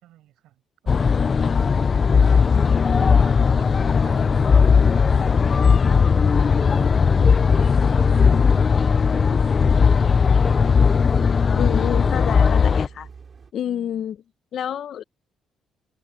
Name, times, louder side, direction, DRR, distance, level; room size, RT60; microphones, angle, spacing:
voice 1, 0.0-2.7 3.2-5.3 5.9-8.6 11.0-11.5 13.7-14.1, right 14 dB, 90° right, 5.7 m, -50 dB
sound 1, 0.9-12.9, left 5 dB, 40° left, 0.6 m, -17 dB
sound 2, 6.6-13.5, right 5 dB, 45° right, 4.6 m, -48 dB
voice 2, 11.5-13.1 13.5-14.2 14.5-15.0, left 10 dB, 65° left, 1.0 m, -28 dB
cardioid pair, 90°, 0 cm